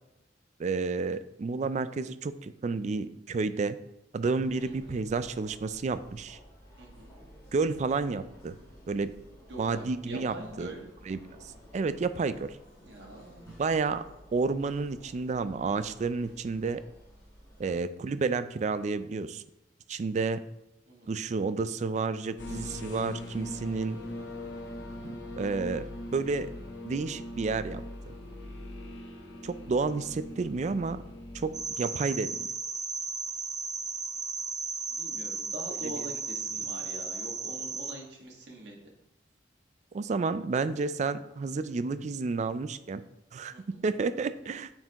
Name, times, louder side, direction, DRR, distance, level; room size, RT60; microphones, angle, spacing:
voice 1, 0.6-3.8 4.1-6.4 7.5-8.6 8.9-9.1 9.6-10.7 11.1-11.2 11.7-12.6 13.5-14.0 14.3-16.8 17.6-19.4 19.9-20.4 21.1-24.0 25.0-26.5 26.8-27.8 29.4-31.0 31.3-32.5 35.8-36.0 39.9-43.0 43.3-43.5 43.8-44.7, right 4 dB, 40° right, 13 dB, 0.3 m, -30 dB
sound 1, 4.3-17.8, equal, 20° left, 2.3 m, -54 dB
voice 2, 6.8-7.1 9.5-10.9 12.8-13.5 20.9-21.1 34.9-38.8 43.5-43.8, right 2 dB, 65° right, -1 dB, 1.6 m, -43 dB
sound 2, 22.4-31.6, left 1 dB, 75° left, 1.1 m, -41 dB
sound 3, 31.5-37.9, right 4 dB, 20° right, 0.8 m, -35 dB
9.1 x 4.5 x 3.0 m, 0.89 s
head